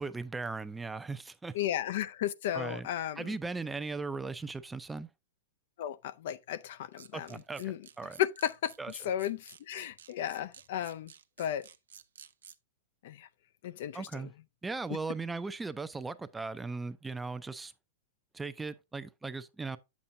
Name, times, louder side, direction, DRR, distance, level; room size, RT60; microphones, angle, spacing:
voice 1, 0.0-1.6 2.5-2.9 3.2-5.1 7.1-7.6 8.0-8.2 8.8-8.9 13.9-14.3 14.6-17.7 18.3-19.8, right 3 dB, 10° right, 0.5 m, -38 dB
voice 2, 1.5-3.4 5.8-7.8 8.2-8.7 9.0-11.1 11.4-11.7 13.0-13.3 13.6-14.3, left 11 dB, 65° left, 0.5 m, -34 dB
sound 1, 6.9-12.6, right 7 dB, 85° right, 0.6 m, -53 dB
8.4 x 7.3 x 2.6 m
hypercardioid pair, 120°, 0 cm